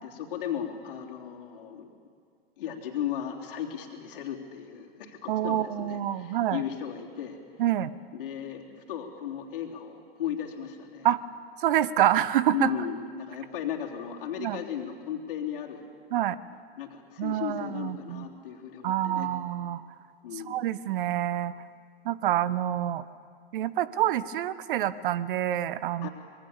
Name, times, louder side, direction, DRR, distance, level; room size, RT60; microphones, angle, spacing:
voice 1, 0.0-1.9 2.6-7.4 8.1-11.1 12.5-15.9 16.8-19.3 20.2-20.7 26.0-26.1, left 9 dB, 60° left, 0 dB, 3.3 m, -36 dB
voice 2, 5.3-6.6 7.6-7.9 11.0-11.2 11.6-12.7 14.4-14.6 16.1-16.4 17.2-18.3 18.8-19.8 20.5-21.5 22.0-23.0 23.5-26.1, right 12 dB, 55° right, 17 dB, 0.9 m, -27 dB
25.0 x 22.0 x 7.1 m, 2.2 s
figure-of-eight pair, 95°, 31 cm